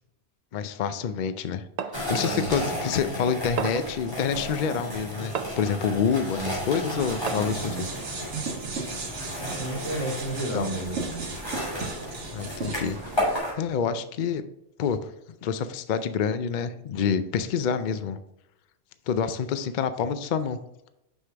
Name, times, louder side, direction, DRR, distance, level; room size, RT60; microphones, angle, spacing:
voice 1, 0.5-1.6 2.1-7.8 10.5-10.7 12.3-13.0 13.6-14.4 14.8-15.1 15.4-18.2 19.1-20.6, left 7 dB, 55° left, 11 dB, 0.5 m, -27 dB
Plates Set Down, 1.8-2.1 3.6-4.0 5.3-5.7 7.3-7.7, right 7 dB, 60° right, 0.4 m, -32 dB
sound 1, 1.9-13.5, equal, 20° left, 2.7 m, -33 dB
voice 2, 2.2-2.7 6.4-6.6 7.3-7.8 9.4-11.3, right 2 dB, 90° left, -3 dB, 2.5 m, -33 dB
sound 2, 7.0-13.4, right 4 dB, 75° right, 1.5 m, -36 dB
6.2 x 5.6 x 3.4 m, 0.86 s
omnidirectional pair, 1.2 m